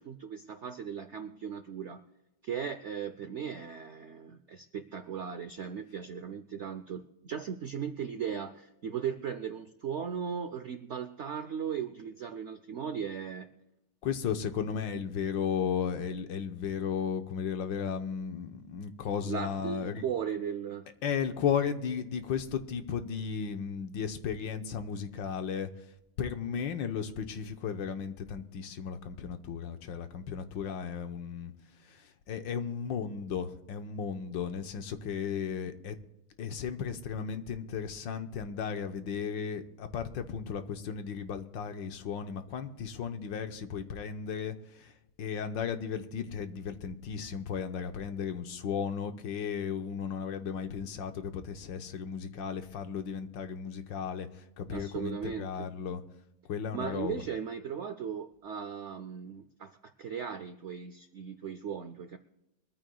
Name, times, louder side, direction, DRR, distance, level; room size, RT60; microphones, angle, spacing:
voice 1, 0.0-2.0 2.4-13.5 19.3-20.9 54.7-55.7 56.7-62.2, right 7 dB, 70° right, 9 dB, 0.6 m, -37 dB
voice 2, 14.0-20.0 21.0-25.7 26.2-31.5 31.8-36.0 36.4-44.9 45.2-56.0 56.5-57.2, left 7 dB, 85° left, 8 dB, 1.7 m, -35 dB
23.0 x 14.0 x 2.3 m, 0.90 s
omnidirectional pair, 2.0 m